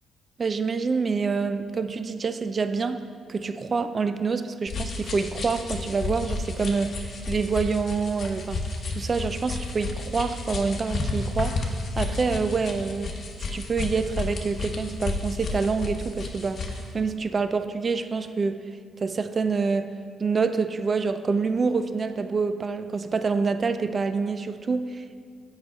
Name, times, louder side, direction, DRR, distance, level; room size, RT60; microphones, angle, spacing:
voice 1, 0.4-3.0 3.3-8.6 8.9-13.1 13.4-16.7 16.9-18.6 19.0-19.9 20.2-25.2, right 4 dB, 35° right, 10 dB, 0.3 m, -27 dB
sound 1, 4.7-16.9, left 3 dB, 50° left, 0.8 m, -32 dB
6.5 x 4.9 x 4.5 m, 2.1 s
cardioid pair, 90°, 0 cm